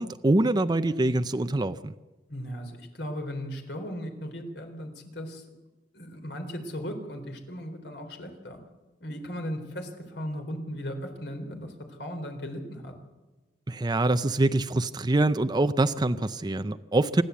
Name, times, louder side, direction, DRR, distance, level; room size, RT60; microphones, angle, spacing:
voice 1, 0.0-1.9 13.7-17.2, right 2 dB, 25° right, 11 dB, 0.5 m, -24 dB
voice 2, 2.3-5.4 5.9-8.6 9.0-12.9, equal, 65° left, 5 dB, 3.9 m, -37 dB
26.5 x 12.0 x 8.4 m, 1.2 s
head